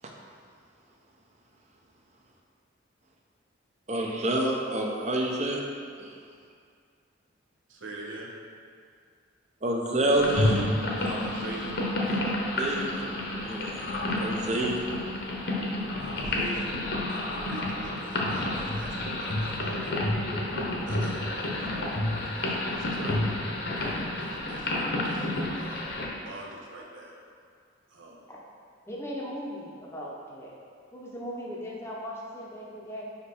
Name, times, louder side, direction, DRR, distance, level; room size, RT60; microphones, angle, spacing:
voice 1, 3.9-5.6 6.0-6.2 9.6-10.7 11.1-11.2 12.6-13.8 14.2-14.8, right 1 dB, 35° right, 0 dB, 0.6 m, -28 dB
voice 2, 7.7-8.3 11.0-12.2 14.6-14.7 16.0-16.8 17.1-19.9 20.9-23.2 23.8-25.9 26.2-27.2 27.9-28.2, right 1 dB, 80° right, -2 dB, 1.1 m, -43 dB
sound 1, 10.2-26.1, left 1 dB, 55° left, 0.9 m, -30 dB
voice 3, 28.8-30.5 30.9-33.1, equal, 15° left, -4 dB, 0.7 m, -38 dB
5.3 x 5.2 x 4.3 m, 2.2 s
head